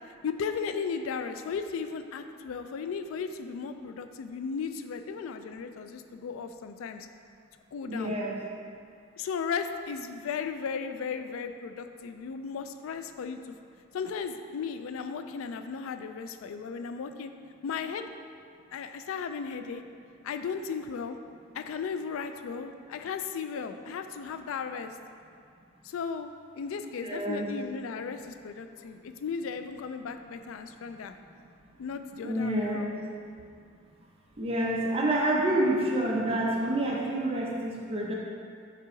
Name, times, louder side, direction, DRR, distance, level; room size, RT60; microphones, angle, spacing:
voice 1, 0.2-7.1 7.7-8.1 9.2-13.5 13.9-17.3 17.6-18.1 18.7-19.8 20.2-21.2 21.5-24.9 25.8-26.3 26.6-31.1 31.8-33.0, left 6 dB, 75° left, 8 dB, 0.3 m, -35 dB
voice 2, 7.9-8.4 27.0-27.5 32.2-32.9 34.4-38.1, right 1 dB, 30° right, -3 dB, 0.8 m, -28 dB
5.6 x 4.7 x 3.8 m, 2.3 s
head